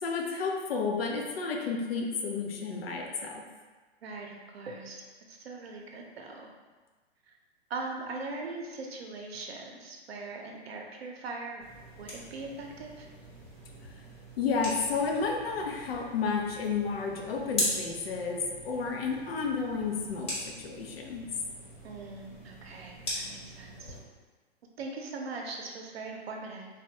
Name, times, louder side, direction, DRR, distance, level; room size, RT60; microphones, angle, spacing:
voice 1, 0.0-3.4 14.4-21.3, left 5 dB, 70° left, 1 dB, 0.6 m, -31 dB
voice 2, 4.0-6.5 7.7-11.6 12.0-13.1 21.8-24.0 24.8-26.7, right 3 dB, 70° right, 0 dB, 0.7 m, -40 dB
sound 1, 11.6-24.0, equal, 20° left, 1.1 m, -40 dB
3.4 x 2.2 x 2.8 m, 1.3 s
hypercardioid pair, 115°, 31 cm